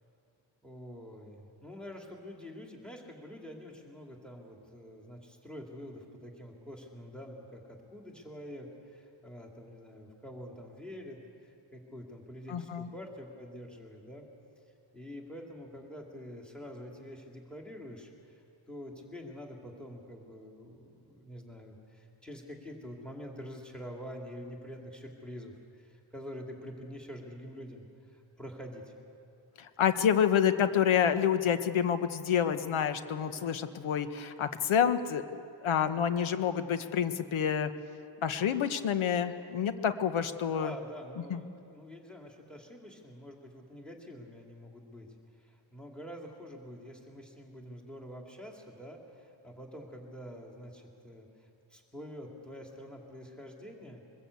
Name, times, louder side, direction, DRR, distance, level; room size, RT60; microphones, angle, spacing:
voice 1, 0.6-14.3 14.9-18.4 18.7-28.9 40.5-45.1 45.3-54.1, equal, ahead, 0 dB, 2.5 m, -46 dB
voice 2, 12.5-12.9 29.6-37.7 38.2-40.7 41.3-41.4, left 8 dB, 90° left, 10 dB, 1.3 m, -28 dB
23.0 x 20.5 x 8.3 m, 2.6 s
wide cardioid pair, 165°, 47 cm